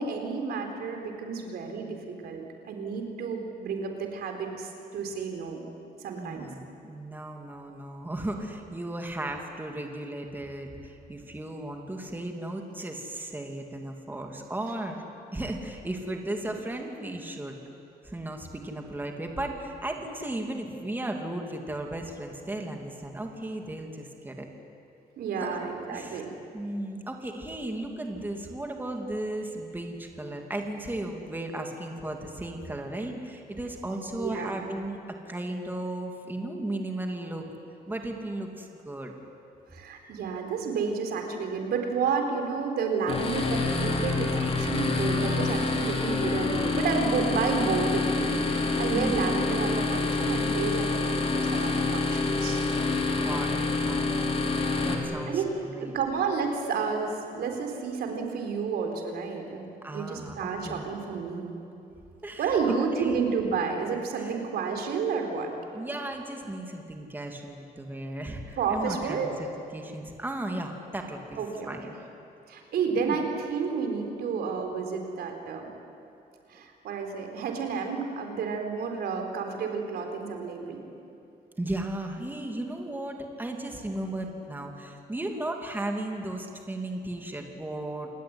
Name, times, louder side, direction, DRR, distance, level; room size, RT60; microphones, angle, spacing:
voice 1, 0.0-5.6 6.0-6.5 25.2-26.3 34.1-34.6 39.7-52.6 55.3-55.5 55.8-59.7 59.9-61.6 62.4-65.5 68.6-69.3 71.4-71.7 72.5-75.7 76.5-80.8, right 5 dB, 85° right, 4 dB, 4.1 m, -31 dB
voice 2, 6.1-15.0 15.3-17.6 18.0-24.5 25.4-26.2 26.5-35.0 35.3-37.5 37.9-39.1 40.0-40.1 48.9-49.4 52.9-54.4 54.8-55.9 59.8-60.8 62.2-63.2 64.2-64.5 65.7-69.5 69.7-71.4 71.6-72.0 72.9-73.2 81.6-88.1, right 1 dB, 10° right, 2 dB, 2.8 m, -35 dB
sound 1, 43.1-54.9, left 3 dB, 40° left, 3.4 m, -27 dB
28.0 x 20.0 x 9.7 m, 2.7 s
cardioid pair, 125°, 16 cm